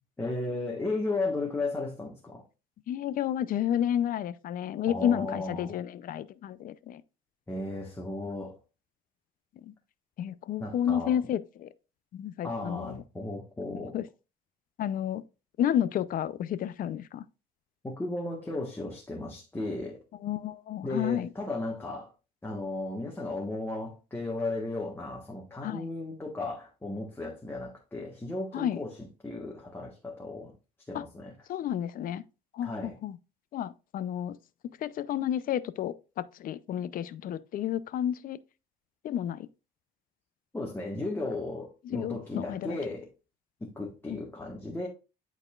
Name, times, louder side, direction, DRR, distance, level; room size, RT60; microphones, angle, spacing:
voice 1, 0.2-2.4 4.9-5.7 7.5-8.6 10.6-11.2 12.4-14.0 17.8-20.0 20.8-22.1 22.4-28.9 29.2-30.5 30.9-31.3 32.6-32.9 40.5-43.1 43.6-44.9, left 2 dB, 15° left, 1.4 m, -35 dB
voice 2, 2.9-7.0 9.6-9.7 10.2-11.7 12.1-13.0 13.9-14.1 14.8-15.2 15.6-17.2 20.2-21.3 25.6-25.9 28.5-28.8 30.9-31.0 31.5-32.2 32.5-33.2 33.5-34.4 34.8-38.4 39.0-39.5 41.8-42.8 44.1-44.2, left 10 dB, 55° left, 0.5 m, -31 dB
11.0 x 4.1 x 2.4 m
cardioid pair, 110°, 17 cm